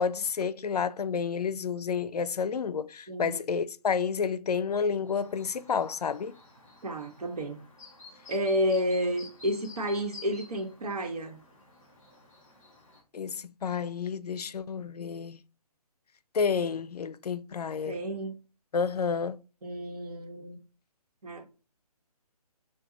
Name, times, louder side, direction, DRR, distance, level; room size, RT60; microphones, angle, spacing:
voice 1, 0.0-6.4 13.1-15.4 16.3-18.0 18.7-19.4, left 6 dB, 80° left, 0.5 m, -30 dB
Chirp tweet, 5.0-13.0, left 3 dB, 5° left, 0.4 m, -52 dB
voice 2, 6.8-7.6 8.3-11.4 17.9-18.3 19.6-20.6 21.2-21.4, equal, 75° right, 1.3 m, -31 dB
4.5 x 2.3 x 3.7 m
hypercardioid pair, 175°, 20 cm